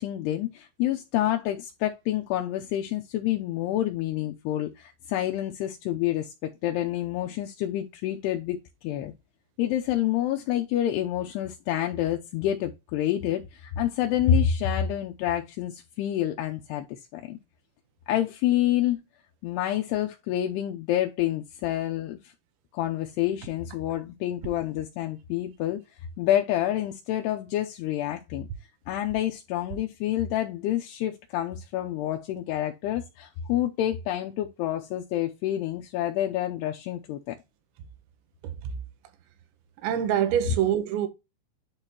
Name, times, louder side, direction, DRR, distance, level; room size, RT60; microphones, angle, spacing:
voice 1, 0.0-8.6 8.8-9.1 9.6-17.4 18.1-19.0 19.4-22.2 22.7-25.8 26.2-28.5 28.9-37.4, left 12 dB, 80° left, 2.6 m, -28 dB
voice 2, 38.4-38.7 39.8-41.1, right 10 dB, 80° right, 3.3 m, -25 dB
11.0 x 3.8 x 2.9 m
omnidirectional pair, 5.3 m